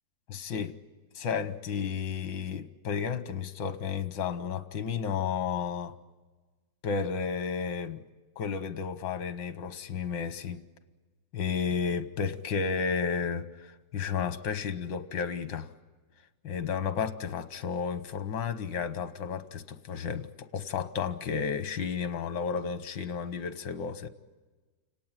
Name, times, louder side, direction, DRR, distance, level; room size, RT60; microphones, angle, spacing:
voice 1, 0.3-0.8 1.2-5.9 6.8-8.0 8.4-10.6 11.3-15.7 16.4-24.1, left 6 dB, 80° left, 12 dB, 1.7 m, -32 dB
29.5 x 18.0 x 9.1 m, 1.3 s
omnidirectional pair, 2.0 m